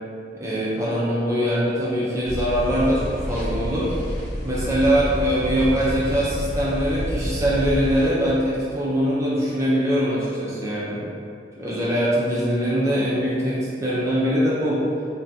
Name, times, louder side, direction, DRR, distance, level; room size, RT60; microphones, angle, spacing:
voice 1, 0.3-3.9 4.4-11.0 11.6-14.8, equal, 15° right, -8 dB, 0.4 m, -22 dB
sound 1, 2.2-8.1, equal, 40° left, 0.6 m, -29 dB
3.4 x 2.2 x 2.7 m, 2.4 s
head